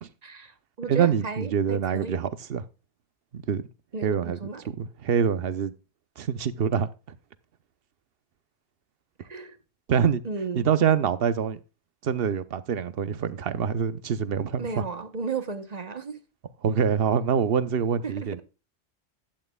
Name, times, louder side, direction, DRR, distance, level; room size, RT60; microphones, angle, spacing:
voice 1, 0.2-2.2 3.9-4.6 9.3-9.6 10.2-10.7 14.6-16.2 18.0-18.4, right 4 dB, 40° right, 1.0 m, -34 dB
voice 2, 0.9-2.6 3.3-3.6 4.0-4.4 4.8-5.7 6.2-6.9 9.9-10.2 10.5-11.6 12.0-14.8 16.6-18.4, right 7 dB, 65° right, 1.0 m, -25 dB
12.0 x 9.1 x 2.3 m
omnidirectional pair, 1.1 m